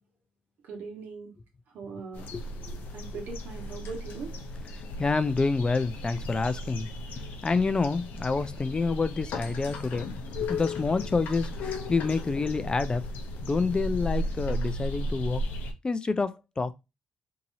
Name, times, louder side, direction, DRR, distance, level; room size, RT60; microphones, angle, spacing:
voice 1, 0.6-1.4 1.7-2.3 2.9-4.3, right 4 dB, 70° right, 1.2 m, -40 dB
sound 1, 2.1-15.7, left 1 dB, 70° left, 0.6 m, -35 dB
voice 2, 2.3-2.8 4.7-6.9 7.4-10.1 10.4-13.0 13.4-15.4 15.8-16.7, left 4 dB, 30° left, 0.4 m, -28 dB
2.8 x 2.7 x 2.6 m
supercardioid pair, 60°, 3 cm